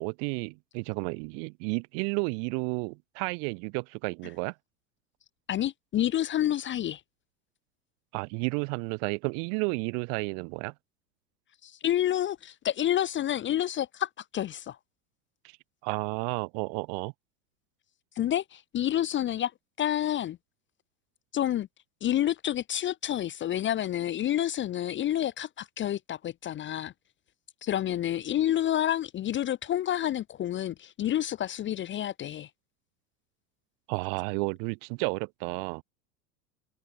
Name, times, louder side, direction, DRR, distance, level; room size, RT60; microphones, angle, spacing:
voice 1, 0.0-4.5 8.1-10.7 15.8-17.1 33.9-35.8, right 40 dB or more, 50° right, 1.6 m, -32 dB
voice 2, 5.5-7.0 11.6-14.8 18.2-19.5 19.8-20.4 21.3-21.7 22.0-26.9 27.6-32.5, left 12 dB, 25° left, 0.7 m, -29 dB
open air
figure-of-eight pair, 85°, 47 cm